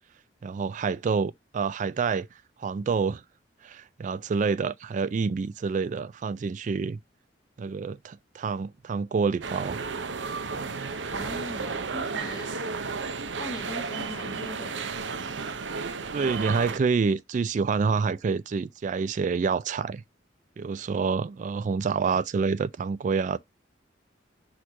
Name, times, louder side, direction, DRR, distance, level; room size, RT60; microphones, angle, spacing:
voice 1, 0.4-2.3 2.6-3.2 3.6-7.0 7.6-9.8 16.1-20.0 20.6-23.4, right 5 dB, 40° right, 0.3 m, -27 dB
sound 1, 9.4-16.8, right 4 dB, 75° right, 0.7 m, -33 dB
voice 2, 11.1-12.6 13.4-14.8, left 1 dB, 20° left, 0.6 m, -40 dB
6.3 x 3.1 x 5.5 m
head